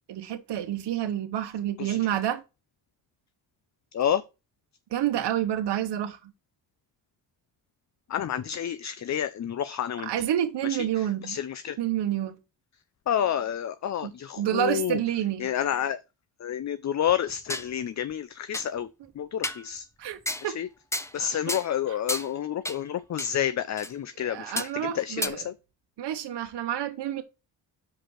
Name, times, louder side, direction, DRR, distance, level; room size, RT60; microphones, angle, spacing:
voice 1, 0.1-2.4 4.9-6.3 10.0-11.4 11.8-12.4 14.0-14.1 14.4-15.5 20.0-20.6 21.2-21.3 21.9-22.0 24.2-25.5 26.0-27.2, right 11 dB, 65° right, 1.1 m, -29 dB
voice 2, 8.1-10.1 10.6-11.8 13.1-15.0 15.4-16.0 16.4-18.9 19.1-19.9 20.4-20.7 21.1-25.5, left 9 dB, 40° left, 0.6 m, -29 dB
sound 1, 17.1-17.7 18.1-18.2 18.5-18.7 19.4-19.6 20.2-20.5 20.9-21.2 21.5-21.7 22.1-22.3 22.6-22.8 23.2-23.3 23.8-23.9 24.6-24.7 25.2-25.3, left 1 dB, 5° left, 0.9 m, -31 dB
6.2 x 5.1 x 6.3 m
cardioid pair, 90°, 43 cm